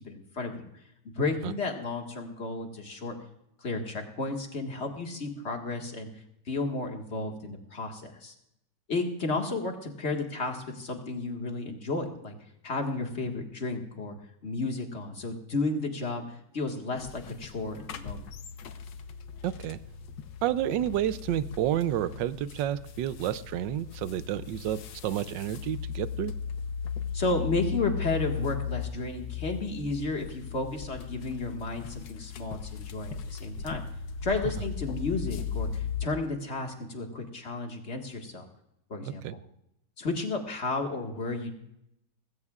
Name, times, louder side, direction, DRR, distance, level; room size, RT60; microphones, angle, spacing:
voice 1, 0.1-0.7 1.2-3.2 3.6-6.1 6.5-8.3 8.9-12.3 12.6-14.2 14.4-16.2 16.5-18.3 27.1-33.8 34.2-38.5 38.9-39.2 40.0-41.5, left 3 dB, 40° left, 3 dB, 1.9 m, -32 dB
sound 1, 17.0-36.1, left 7 dB, 80° left, 1.6 m, -37 dB
voice 2, 19.4-19.8 20.4-26.3 34.6-34.7 39.2-39.4, right 12 dB, 90° right, 15 dB, 1.3 m, -30 dB
19.5 x 16.5 x 2.4 m, 0.81 s
omnidirectional pair, 1.9 m